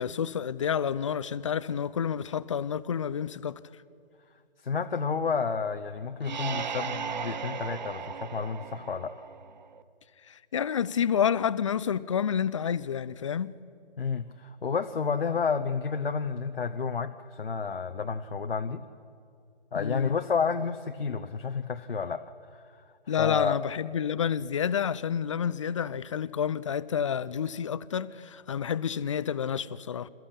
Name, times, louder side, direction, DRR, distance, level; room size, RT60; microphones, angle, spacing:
voice 1, 0.0-3.6 10.3-13.5 19.8-20.1 23.1-30.1, left 8 dB, 30° left, 0.5 m, -29 dB
voice 2, 4.6-9.1 14.0-18.8 19.7-22.8 23.2-23.6, left 5 dB, 70° left, 1.0 m, -30 dB
sound 1, 6.2-9.8, right 6 dB, 45° right, 1.1 m, -36 dB
27.5 x 14.5 x 8.6 m
figure-of-eight pair, 140°, 30 cm